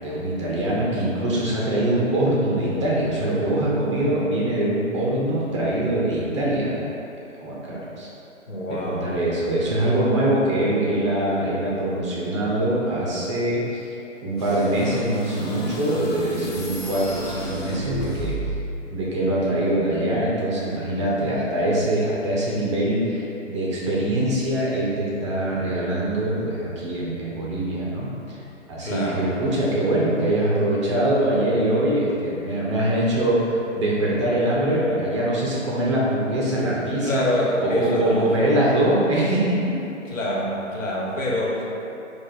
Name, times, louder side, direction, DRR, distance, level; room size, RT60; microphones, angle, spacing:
voice 1, 0.0-6.8 7.4-8.1 8.7-13.9 14.2-18.4 18.9-28.4 28.7-37.2 37.6-39.8, right 1 dB, 25° right, -6 dB, 0.6 m, -23 dB
voice 2, 8.5-9.1 28.8-29.3 37.0-38.3 40.0-41.6, left 1 dB, 85° left, -4 dB, 1.3 m, -25 dB
sound 1, 14.4-18.7, right 1 dB, 30° left, 0.7 m, -32 dB
4.9 x 2.4 x 4.2 m, 2.9 s
hypercardioid pair, 140°, 38 cm